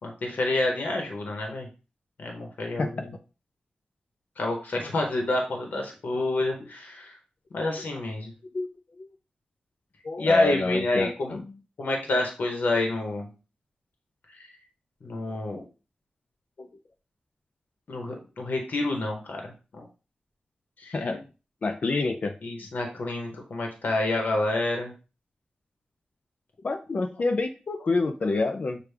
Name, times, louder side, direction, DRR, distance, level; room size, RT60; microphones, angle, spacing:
voice 1, 0.0-1.7 2.2-3.0 4.4-7.2 7.5-8.3 10.2-11.4 11.8-13.3 14.3-14.5 15.0-15.6 17.9-19.9 20.8-21.0 22.4-24.9, left 2 dB, 75° left, 2 dB, 1.0 m, -28 dB
voice 2, 10.0-11.6 16.6-16.7 20.9-21.2 21.6-22.3 26.6-28.8, left 3 dB, 50° left, 6 dB, 0.4 m, -27 dB
6.5 x 2.4 x 3.4 m, 0.33 s
wide cardioid pair, 105°, 3 cm